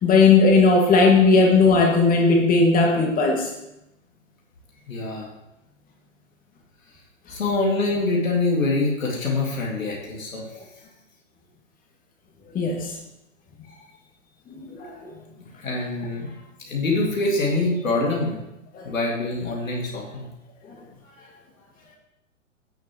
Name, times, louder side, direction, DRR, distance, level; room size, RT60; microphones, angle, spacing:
voice 1, 0.0-3.5 12.5-12.9 14.7-14.9 18.7-18.9, left 4 dB, 20° left, 1 dB, 2.1 m, -17 dB
voice 2, 4.9-5.3 7.3-10.4 15.4-18.4 18.8-20.3 21.2-21.4, left 2 dB, 80° left, -2 dB, 2.6 m, -25 dB
16.0 x 6.6 x 3.2 m, 0.91 s
figure-of-eight pair, 115°, 40 cm